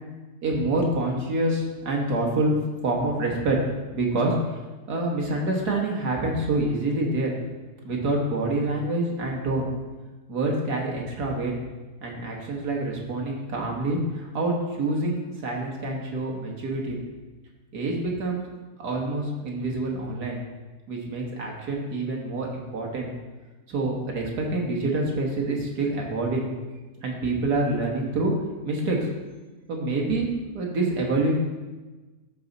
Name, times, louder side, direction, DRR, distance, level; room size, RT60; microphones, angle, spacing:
voice 1, 0.4-2.6 2.8-3.6 3.9-4.4 4.9-7.3 7.8-9.7 10.3-11.5 12.0-17.0 17.7-18.5 18.8-20.4 20.9-23.1 23.7-26.5 27.0-28.3 28.6-29.1 29.7-30.3 30.5-31.3, right 2 dB, 80° right, -1 dB, 1.8 m, -26 dB
13.5 x 4.8 x 4.0 m, 1.2 s
omnidirectional pair, 1.7 m